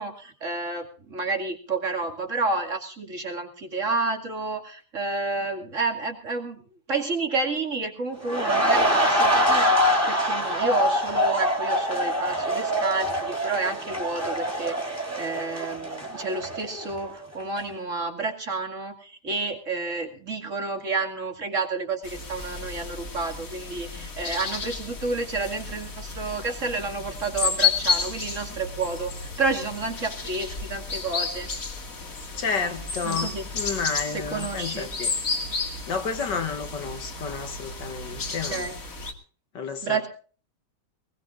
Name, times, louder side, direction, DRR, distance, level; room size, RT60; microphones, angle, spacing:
voice 1, 0.0-6.6 6.9-31.5 33.0-33.5 34.1-34.9 38.5-38.8 39.8-40.1, right 3 dB, 40° right, 4 dB, 2.7 m, -30 dB
sound 1, 8.2-17.1 17.4-17.6, equal, 10° right, 3.5 m, -24 dB
sound 2, 22.0-39.1, left 5 dB, 50° left, 2.6 m, -32 dB
voice 2, 32.4-35.1 35.9-38.7 39.5-40.1, left 5 dB, 70° left, 7 dB, 2.4 m, -31 dB
21.0 x 20.0 x 2.5 m, 0.41 s
omnidirectional pair, 1.9 m